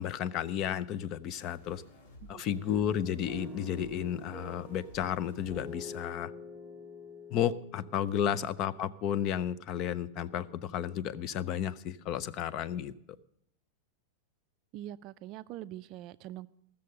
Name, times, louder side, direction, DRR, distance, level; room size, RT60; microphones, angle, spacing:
voice 1, 0.0-1.8 2.3-6.3 7.3-12.9, left 10 dB, 30° left, 17 dB, 0.5 m, -32 dB
sound 1, 1.6-6.0, left 2 dB, 65° left, 2.0 m, -54 dB
voice 2, 2.3-2.9 8.3-8.5 14.7-16.5, right 13 dB, 35° right, 15 dB, 0.4 m, -44 dB
sound 2, 3.3-9.3, left 2 dB, 5° left, 1.5 m, -47 dB
15.0 x 6.8 x 6.5 m, 0.72 s
supercardioid pair, 165°, 0 cm